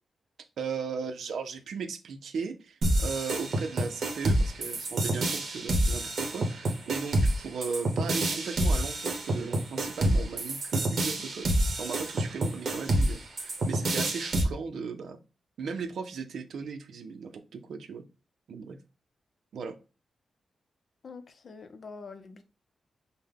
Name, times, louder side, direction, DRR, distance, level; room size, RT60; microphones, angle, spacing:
voice 1, 0.6-11.5 11.8-15.2 15.6-18.0 18.5-18.8 19.5-19.8, right 5 dB, 70° right, 0.6 m, -37 dB
sound 1, 2.8-14.4, right 1 dB, 45° right, 1.1 m, -28 dB
voice 2, 21.0-22.4, left 4 dB, 40° left, 0.6 m, -45 dB
5.6 x 2.2 x 3.5 m
wide cardioid pair, 170°, 0 cm